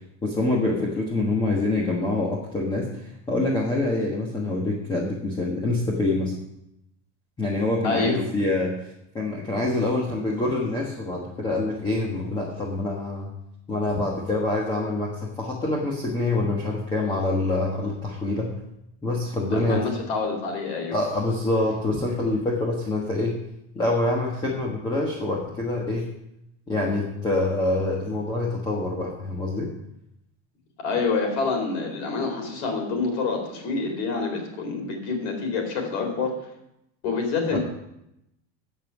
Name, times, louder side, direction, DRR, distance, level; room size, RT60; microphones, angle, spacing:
voice 1, 0.2-6.3 7.4-8.9 9.1-13.3 13.7-15.1 15.4-18.5 19.0-19.9 20.9-23.3 23.7-26.1 26.7-29.7 37.5-37.6, left 2 dB, 15° left, -3 dB, 1.4 m, -25 dB
voice 2, 7.8-8.2 19.4-21.0 30.8-36.4 37.0-37.6, left 4 dB, 65° left, 2 dB, 3.9 m, -27 dB
16.5 x 5.6 x 6.1 m, 0.83 s
cardioid pair, 175°, 35 cm